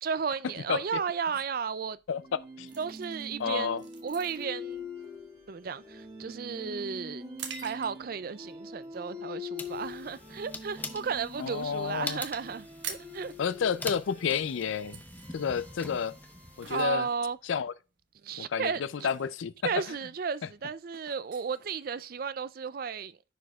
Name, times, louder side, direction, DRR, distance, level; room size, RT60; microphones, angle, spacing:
voice 1, 0.0-2.0 2.8-4.9 5.5-7.2 7.6-13.3 16.7-17.4 18.2-19.1 19.6-23.2, right 6 dB, 45° right, 0.4 m, -34 dB
voice 2, 0.7-1.0 2.1-2.2 2.6-2.7 3.4-3.8 11.4-12.2 13.4-15.0 15.3-16.2 16.6-17.1 17.4-17.7 18.4-18.7 19.0-19.7, left 7 dB, 80° left, 0.4 m, -30 dB
sound 1, 2.1-17.2, left 3 dB, 30° right, 1.9 m, -45 dB
sound 2, 2.7-8.3 8.8-9.0 9.5-9.9 10.2-11.4 11.6-11.7 11.9-12.1 12.4-22.4, right 7 dB, 65° right, 1.1 m, -47 dB
sound 3, 9.6-16.9, left 2 dB, 10° left, 0.5 m, -44 dB
10.0 x 4.8 x 2.3 m
head